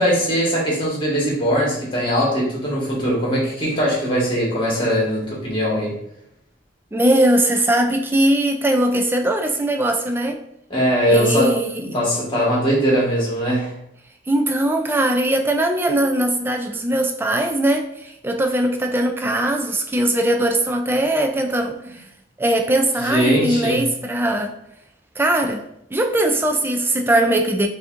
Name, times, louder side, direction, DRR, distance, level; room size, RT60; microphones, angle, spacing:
voice 1, 0.0-5.9 10.7-11.5 11.8-13.7 23.0-23.8, equal, 25° left, -4 dB, 1.4 m, -20 dB
voice 2, 6.9-10.4 11.1-11.9 14.3-22.0 22.4-24.5 25.2-25.6 25.9-27.7, right 1 dB, 10° right, 4 dB, 0.3 m, -20 dB
6.7 x 2.7 x 2.5 m, 0.76 s
head